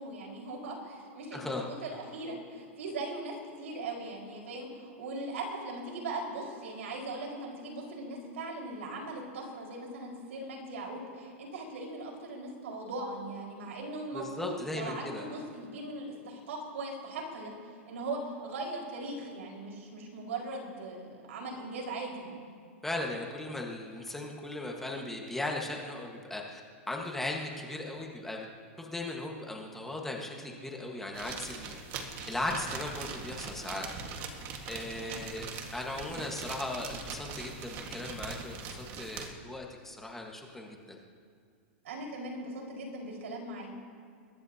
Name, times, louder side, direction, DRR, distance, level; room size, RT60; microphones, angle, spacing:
voice 1, 0.0-17.5 17.9-22.4 35.0-35.3 41.8-43.8, right 2 dB, 85° right, 0 dB, 4.8 m, -39 dB
voice 2, 1.3-1.7 14.1-15.2 22.8-26.6 26.9-28.5 28.8-31.7 32.3-33.9 34.7-35.5 35.7-41.0, left 2 dB, 5° left, -1 dB, 1.4 m, -37 dB
sound 1, 31.1-39.3, right 5 dB, 35° right, 1.6 m, -41 dB
22.5 x 21.0 x 2.8 m, 2.3 s
supercardioid pair, 160°, 7 cm